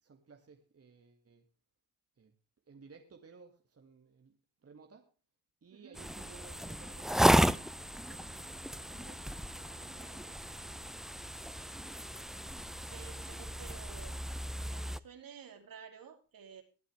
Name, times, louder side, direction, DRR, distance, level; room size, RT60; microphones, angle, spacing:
voice 1, 0.0-1.5 2.2-2.3 2.7-4.3 4.6-5.1 5.6-11.0, right 5 dB, 35° right, 2.2 m, -58 dB
sound 1, 5.9-15.0, equal, ahead, 0.6 m, -33 dB
voice 2, 12.9-14.2 14.5-16.6, right 7 dB, 55° right, 3.0 m, -52 dB
22.5 x 8.2 x 3.4 m
supercardioid pair, 60°, 40 cm